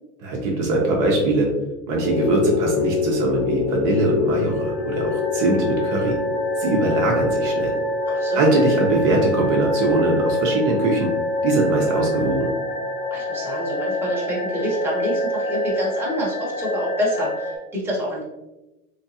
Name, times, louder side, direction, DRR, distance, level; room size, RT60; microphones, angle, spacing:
voice 1, 0.2-1.5 1.9-6.2 6.6-7.7 8.3-11.1 11.4-12.5, right 2 dB, 40° right, -2 dB, 0.9 m, -21 dB
sound 1, 2.0-17.6, left 2 dB, 35° left, 0.9 m, -25 dB
voice 2, 8.1-8.5 13.1-18.2, equal, 5° right, -6 dB, 1.1 m, -27 dB
3.5 x 3.2 x 2.8 m, 0.99 s
supercardioid pair, 125°, 43 cm